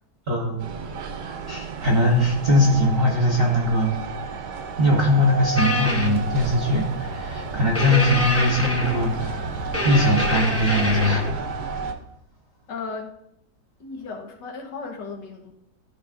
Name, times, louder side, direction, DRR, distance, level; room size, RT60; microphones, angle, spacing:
voice 1, 0.3-0.7 1.5-3.9 4.8-9.5 9.8-11.5, left 1 dB, 40° right, -1 dB, 1.1 m, -21 dB
sound 1, 0.6-11.9, right 4 dB, 70° right, 1.2 m, -32 dB
sound 2, 5.6-6.2 7.7-9.2 9.7-11.3, left 1 dB, 15° left, 0.5 m, -26 dB
voice 2, 12.7-13.1 13.8-15.5, left 4 dB, 75° left, 2 dB, 1.8 m, -35 dB
13.0 x 5.0 x 2.5 m, 0.79 s
omnidirectional pair, 1.9 m